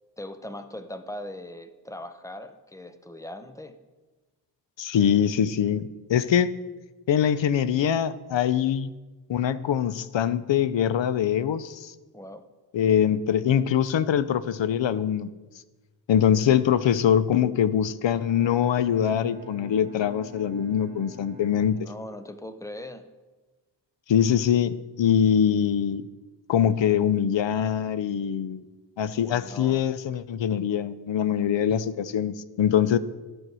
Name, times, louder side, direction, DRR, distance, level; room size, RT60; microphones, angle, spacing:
voice 1, 0.2-3.8 12.1-12.4 21.7-23.0 29.1-29.8, left 1 dB, 5° left, 9 dB, 0.6 m, -40 dB
voice 2, 4.8-6.6 7.1-8.9 9.3-11.9 12.7-15.3 16.1-21.9 24.1-26.0 26.5-28.6 29.0-33.0, left 9 dB, 75° left, 15 dB, 0.6 m, -23 dB
Bowed string instrument, 18.0-22.3, left 3 dB, 20° right, 2.3 m, -45 dB
13.0 x 4.6 x 6.1 m, 1.2 s
wide cardioid pair, 110°, 45 cm